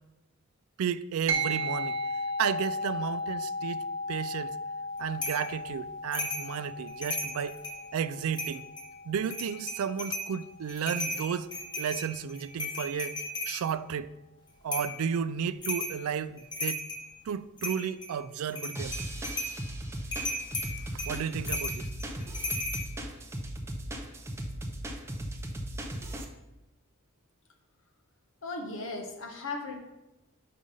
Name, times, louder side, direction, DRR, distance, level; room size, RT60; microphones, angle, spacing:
voice 1, 0.8-2.0 2.4-3.8 4.1-4.6 5.0-7.6 7.9-8.7 9.1-11.5 11.8-13.2 13.5-14.1 14.6-16.8 17.3-19.0 20.9-21.9, right 7 dB, 75° right, 0.3 m, -33 dB
sound 1, 1.3-11.0, equal, 60° right, 0.8 m, -36 dB
sound 2, 5.2-5.5 6.1-6.5 6.9-7.8 8.3-8.9 9.3-10.3 10.7-13.6 14.7-15.0 15.6-16.0 16.4-17.1 17.6-18.1 18.5-19.6 20.1-22.8, left 1 dB, 20° left, 1.1 m, -35 dB
sound 3, 18.7-26.2, right 1 dB, 10° right, 0.5 m, -37 dB
voice 2, 28.4-29.8, left 3 dB, 60° left, 1.0 m, -36 dB
5.3 x 4.9 x 5.4 m
head